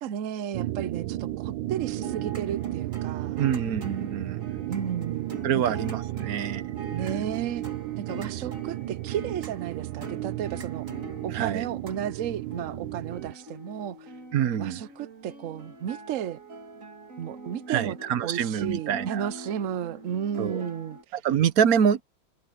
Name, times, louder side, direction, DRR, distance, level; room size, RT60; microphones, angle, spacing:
voice 1, 0.0-3.5 4.7-5.3 5.5-5.8 6.9-7.7 8.0-10.9 11.2-14.1 14.6-16.4 17.2-21.2, right 9 dB, 90° right, 0.7 m, -33 dB
sound 1, 0.5-13.3, right 15 dB, 75° right, 1.3 m, -34 dB
sound 2, 1.7-21.0, right 2 dB, 40° right, 3.0 m, -44 dB
voice 2, 3.4-4.4 5.4-6.7 7.0-7.3 11.3-11.7 14.3-14.8 17.7-19.3 20.4-20.6 21.2-22.0, right 8 dB, 55° right, 1.1 m, -26 dB
omnidirectional pair, 2.3 m